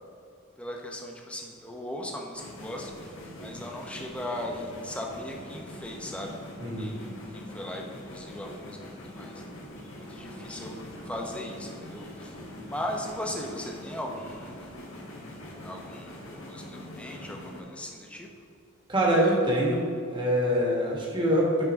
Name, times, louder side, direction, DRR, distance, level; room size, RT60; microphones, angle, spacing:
voice 1, 0.6-6.4 6.8-9.4 10.0-10.8 11.0-12.4 12.7-14.7 15.6-18.3, left 1 dB, 5° left, 0 dB, 0.7 m, -38 dB
sound 1, 2.3-17.6, left 1 dB, 85° left, 1.5 m, -43 dB
voice 2, 6.6-6.9 18.9-19.8 20.1-21.7, equal, 25° right, -3 dB, 1.4 m, -24 dB
9.8 x 4.7 x 3.6 m, 2.6 s
head